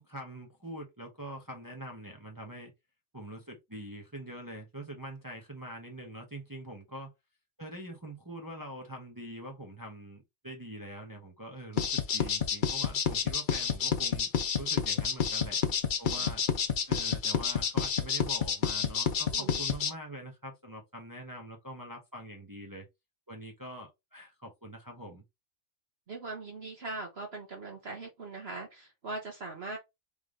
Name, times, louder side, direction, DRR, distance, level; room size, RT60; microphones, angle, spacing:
voice 1, 0.1-2.7 3.1-7.1 7.6-14.3 14.6-15.6 16.0-16.4 16.9-22.9 23.3-25.2, right 1 dB, 20° right, 0.8 m, -44 dB
sound 1, 11.8-19.9, left 7 dB, 50° left, 0.7 m, -29 dB
voice 2, 19.3-19.6 26.1-29.8, right 3 dB, 50° right, 1.3 m, -41 dB
3.6 x 3.3 x 3.7 m
omnidirectional pair, 1.4 m